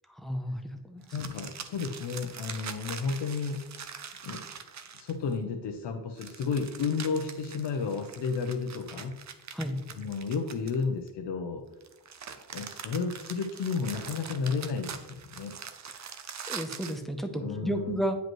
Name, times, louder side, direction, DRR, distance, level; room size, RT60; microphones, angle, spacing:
voice 1, 0.2-1.0 9.5-9.8 16.5-18.2, equal, ahead, 6 dB, 0.6 m, -32 dB
sound 1, 1.0-5.3 6.2-11.1 11.8-17.0, right 7 dB, 45° right, 0.6 m, -43 dB
voice 2, 1.1-3.6 4.2-4.4 4.9-9.2 10.0-11.6 12.5-15.5 17.4-18.0, left 5 dB, 85° left, 4 dB, 0.7 m, -32 dB
9.1 x 5.2 x 3.0 m, 1.1 s
wide cardioid pair, 140°, 41 cm